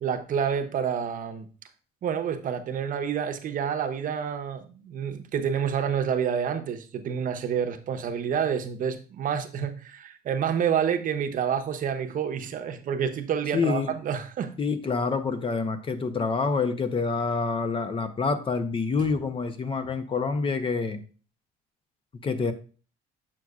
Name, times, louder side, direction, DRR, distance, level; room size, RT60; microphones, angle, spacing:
voice 1, 0.0-1.5 2.0-14.5, right 8 dB, 55° right, 0.8 m, -28 dB
voice 2, 13.5-13.9 14.6-21.0 22.2-22.5, left 4 dB, 30° left, 0.7 m, -27 dB
7.7 x 6.0 x 2.4 m
cardioid pair, 110°, 17 cm